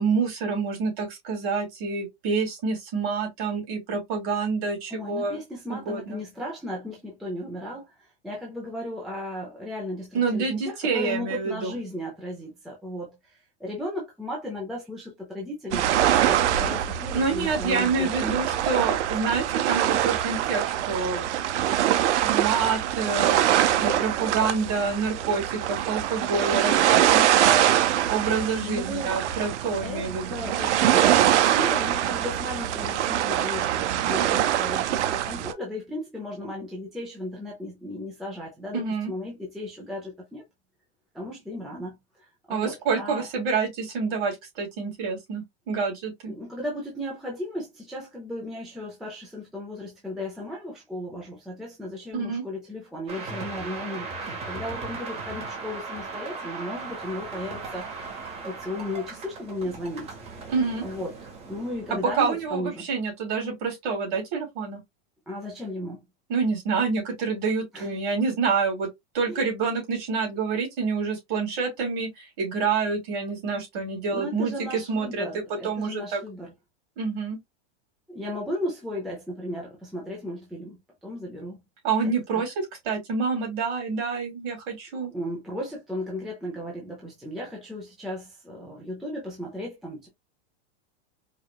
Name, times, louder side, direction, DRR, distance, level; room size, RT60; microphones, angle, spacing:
voice 1, 0.0-5.4 5.7-6.2 10.1-11.8 17.1-21.3 22.2-27.7 28.1-30.5 38.7-39.1 42.5-46.3 52.1-52.4 60.5-60.8 62.2-64.8 66.3-68.9 69.1-76.2 77.0-77.4 81.8-85.1, right 5 dB, 45° right, 2.6 m, -27 dB
voice 2, 4.9-18.7 28.5-29.2 29.8-40.5 41.1-43.3 46.3-58.1 58.4-60.1 60.8-61.2 61.5-62.9 65.3-66.0 67.7-67.9 69.3-69.5 74.1-76.5 78.1-81.6 82.0-82.4 85.1-90.1, left 1 dB, ahead, 0.4 m, -35 dB
sound 1, 15.7-35.5, right 11 dB, 85° right, 0.6 m, -24 dB
sound 2, 53.1-62.7, right 4 dB, 20° right, 0.8 m, -38 dB
4.8 x 2.3 x 2.2 m
supercardioid pair, 160°, 34 cm